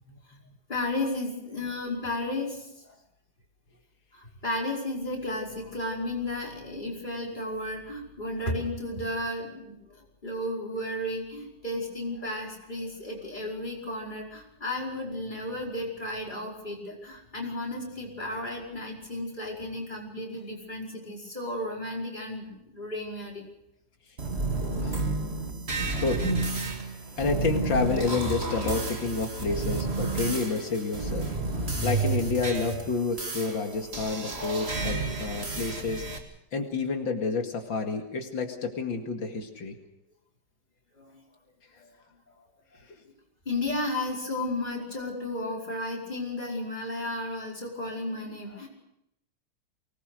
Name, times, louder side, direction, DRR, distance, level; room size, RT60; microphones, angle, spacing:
voice 1, 0.1-0.6 24.8-25.1 26.0-26.4 27.2-31.3 31.8-36.0 36.5-39.8 42.8-43.0, left 4 dB, 90° left, 3 dB, 2.9 m, -29 dB
voice 2, 0.7-2.9 4.1-23.4 41.0-41.2 41.8-41.9 43.5-48.7, left 1 dB, 25° left, -2 dB, 5.6 m, -33 dB
sound 1, 24.2-36.2, right 3 dB, 35° right, 2.5 m, -31 dB
24.0 x 20.0 x 6.6 m, 0.81 s
omnidirectional pair, 2.0 m